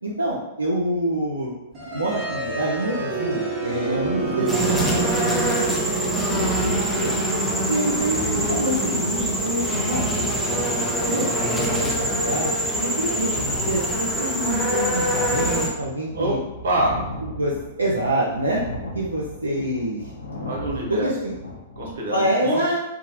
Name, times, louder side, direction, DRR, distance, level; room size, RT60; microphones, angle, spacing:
voice 1, 0.0-1.5 1.9-5.7 6.0-6.7 7.0-7.2 7.7-10.1 10.7-12.5 12.8-16.4 17.2-18.6 18.9-20.0 20.9-21.3 22.1-22.8, right 1 dB, 85° right, -5 dB, 0.4 m, -26 dB
sound 1, 1.7-13.6, right 4 dB, 25° right, 0.8 m, -30 dB
sound 2, 3.8-21.9, left 1 dB, 80° left, 0.4 m, -36 dB
sound 3, 4.5-15.7, equal, 5° left, 0.5 m, -25 dB
voice 2, 16.6-17.0 20.4-21.1 21.8-22.6, right 1 dB, 60° right, -3 dB, 0.9 m, -25 dB
2.8 x 2.2 x 2.7 m, 0.90 s
figure-of-eight pair, 105°, 0 cm